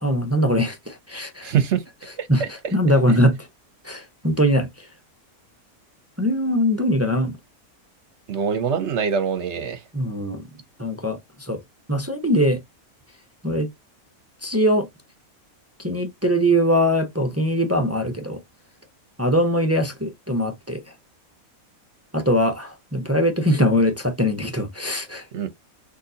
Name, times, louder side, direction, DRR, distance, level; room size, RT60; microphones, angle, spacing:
voice 1, 0.0-1.5 2.3-3.4 3.8-4.7 6.2-7.3 9.9-10.4 10.8-11.6 11.9-12.6 13.4-13.7 14.4-14.9 15.8-18.4 19.2-20.8 22.1-25.2, equal, 20° right, 0.4 m, -21 dB
voice 2, 1.4-1.8 2.2-2.5 3.1-3.2 8.3-9.8 25.3-25.5, right 7 dB, 60° right, 0.9 m, -24 dB
6.5 x 2.8 x 2.7 m
omnidirectional pair, 1.5 m